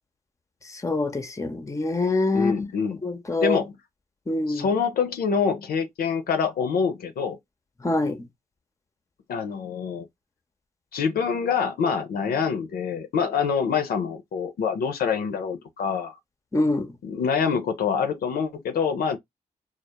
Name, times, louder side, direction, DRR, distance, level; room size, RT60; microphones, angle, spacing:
voice 1, 0.7-2.7 3.0-3.6 4.3-4.7 7.8-8.2 16.5-16.9, left 2 dB, 20° left, 0.6 m, -25 dB
voice 2, 2.3-3.0 3.4-3.7 4.5-7.4 9.3-10.0 10.9-16.2 17.0-19.2, left 6 dB, 65° left, 0.5 m, -25 dB
2.2 x 2.0 x 2.8 m
supercardioid pair, 55°, 16 cm